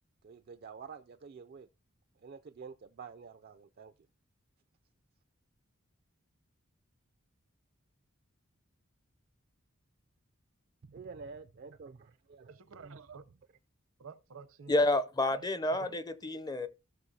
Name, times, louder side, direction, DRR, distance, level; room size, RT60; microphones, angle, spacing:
voice 1, 0.2-1.7 2.2-3.9 10.8-12.9, right 5 dB, 50° right, 0.4 m, -49 dB
voice 2, 12.5-13.2 14.0-14.7 15.3-16.0, right 5 dB, 75° right, 0.7 m, -50 dB
voice 3, 14.7-16.7, left 2 dB, 20° left, 0.5 m, -29 dB
16.5 x 6.3 x 2.7 m
head